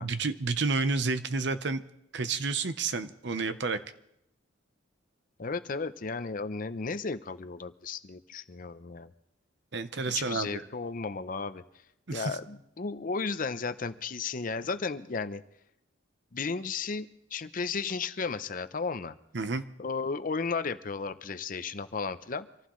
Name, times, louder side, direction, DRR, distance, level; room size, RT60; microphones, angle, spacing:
voice 1, 0.0-1.8 2.1-3.8 9.7-10.6 12.1-12.4 19.3-19.6, right 4 dB, 65° right, 11 dB, 0.8 m, -30 dB
voice 2, 5.4-9.1 10.1-11.6 12.1-15.4 16.3-19.2 19.8-22.5, left 4 dB, 45° left, 12 dB, 0.6 m, -34 dB
25.5 x 15.0 x 3.1 m, 0.78 s
head